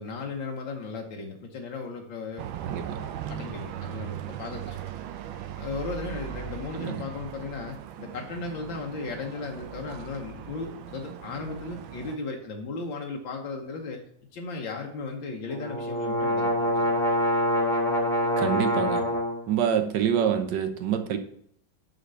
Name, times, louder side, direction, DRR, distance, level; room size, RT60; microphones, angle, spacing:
voice 1, 0.0-2.4 3.3-4.8 5.6-14.0 14.3-17.0, left 3 dB, 75° left, 2 dB, 1.7 m, -36 dB
sound 1, 2.4-12.2, right 10 dB, 85° right, 1.4 m, -39 dB
voice 2, 2.7-3.0 6.8-7.0 18.4-19.0 19.5-21.2, right 8 dB, 70° right, 8 dB, 1.4 m, -26 dB
sound 2, 15.5-19.4, equal, ahead, 1.7 m, -25 dB
6.4 x 5.2 x 6.7 m, 0.67 s
omnidirectional pair, 2.1 m